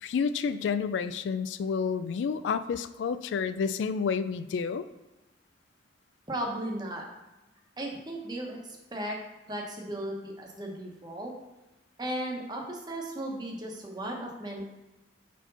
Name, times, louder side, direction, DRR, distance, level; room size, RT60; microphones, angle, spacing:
voice 1, 0.0-4.9, left 6 dB, 75° left, 13 dB, 0.3 m, -30 dB
voice 2, 6.3-7.1 7.8-9.2 9.5-11.3 12.0-14.7, right 1 dB, 20° right, 0 dB, 1.0 m, -36 dB
4.6 x 4.3 x 5.4 m, 1.0 s
head